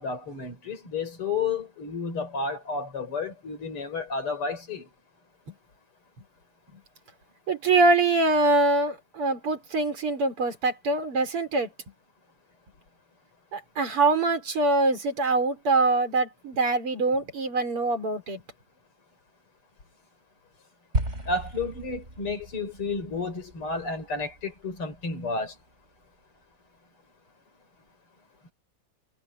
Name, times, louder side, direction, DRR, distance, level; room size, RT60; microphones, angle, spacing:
voice 1, 0.0-4.9 21.3-25.5, left 4 dB, 80° left, 5.6 m, -31 dB
voice 2, 7.5-11.7 13.5-18.4, right 3 dB, 85° right, 4.8 m, -24 dB
sound 1, 20.9-25.3, right 1 dB, 30° right, 7.3 m, -35 dB
omnidirectional pair, 2.4 m